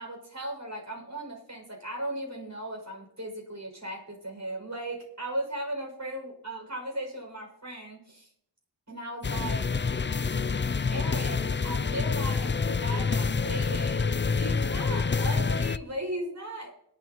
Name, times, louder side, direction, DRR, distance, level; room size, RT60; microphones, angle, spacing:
voice 1, 0.0-8.3 8.9-9.7 10.9-16.7, right 1 dB, 40° right, 1 dB, 6.5 m, -37 dB
sound 1, 9.2-15.8, left 5 dB, 25° left, 0.4 m, -27 dB
21.5 x 12.5 x 3.1 m, 0.72 s
wide cardioid pair, 55°, 44 cm